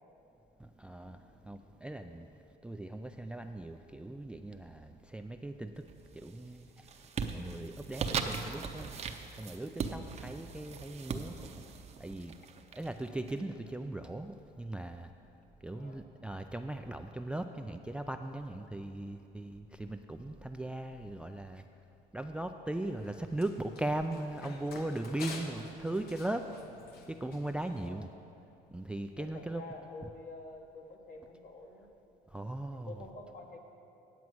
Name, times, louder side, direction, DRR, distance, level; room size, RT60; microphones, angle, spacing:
voice 1, 0.6-2.3 2.6-5.9 6.1-6.9 7.3-8.9 9.4-11.6 12.0-12.3 12.7-15.1 15.6-21.7 22.1-26.5 27.1-28.1 28.7-29.6 32.3-32.9, right 1 dB, 5° right, 7 dB, 0.3 m, -39 dB
sound 1, 5.8-6.3 6.7-13.3, right 5 dB, 40° right, 0.7 m, -39 dB
voice 2, 15.7-16.1 27.8-28.0 29.2-31.9 32.7-33.6, left 2 dB, 50° left, 3 dB, 1.4 m, -48 dB
Run, 22.7-27.9, left 3 dB, 70° left, 1.3 m, -49 dB
9.4 x 8.3 x 6.1 m, 3.0 s
cardioid pair, 110°, 17 cm